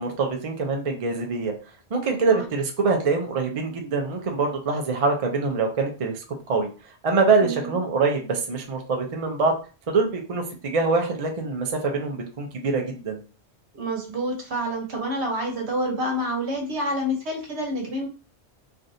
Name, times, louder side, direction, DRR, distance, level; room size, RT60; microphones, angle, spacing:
voice 1, 0.0-1.5 1.9-6.7 7.0-9.5 9.9-13.2, right 4 dB, 40° right, 2 dB, 0.6 m, -24 dB
voice 2, 7.4-7.8 13.7-18.1, equal, 80° right, 2 dB, 1.2 m, -28 dB
3.2 x 2.5 x 2.6 m, 0.35 s
omnidirectional pair, 1.1 m